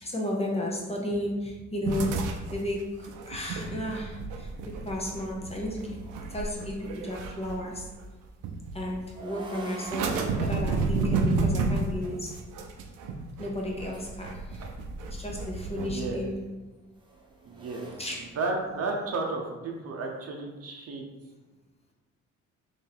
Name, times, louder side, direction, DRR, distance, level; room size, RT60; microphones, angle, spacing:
voice 1, 0.0-2.2 2.5-6.0 6.3-7.9 8.7-12.4 13.4-14.6 15.1-16.4 18.0-18.3, left 1 dB, 20° left, -2 dB, 0.8 m, -33 dB
sound 1, 1.8-8.1 8.4-9.1 9.8-16.1, right 3 dB, 90° right, 0.5 m, -31 dB
sound 2, 5.8-7.1 8.9-12.2 13.5-14.2 15.6-19.1, right 2 dB, 15° right, 0.7 m, -47 dB
voice 2, 15.8-16.3 17.5-17.9 18.4-21.0, right 3 dB, 55° right, 1 dB, 0.7 m, -32 dB
3.2 x 2.7 x 4.0 m, 1.2 s
cardioid pair, 90°, 30 cm